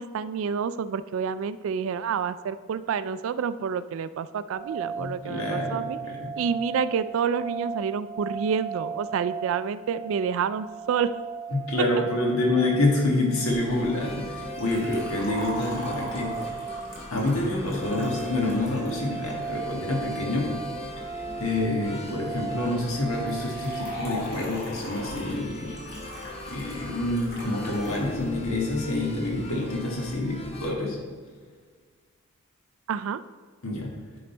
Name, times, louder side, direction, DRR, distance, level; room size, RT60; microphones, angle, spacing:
voice 1, 0.0-6.0 6.4-11.1 32.9-33.2, right 6 dB, 65° right, 15 dB, 0.3 m, -28 dB
sound 1, 4.5-24.2, right 6 dB, 15° right, 0.9 m, -37 dB
voice 2, 5.0-6.3 11.5-16.6 17.1-20.5 21.0-21.1 21.4-25.8 26.5-31.0 33.6-33.9, left 2 dB, 75° left, -1 dB, 1.7 m, -27 dB
sound 2, 13.5-30.7, left 2 dB, 30° left, 0.8 m, -41 dB
Liquid, 14.5-19.5 23.3-28.1 28.4-28.5 29.4-29.5, left 1 dB, 45° left, 2.2 m, -40 dB
9.4 x 4.0 x 4.4 m, 1.5 s
head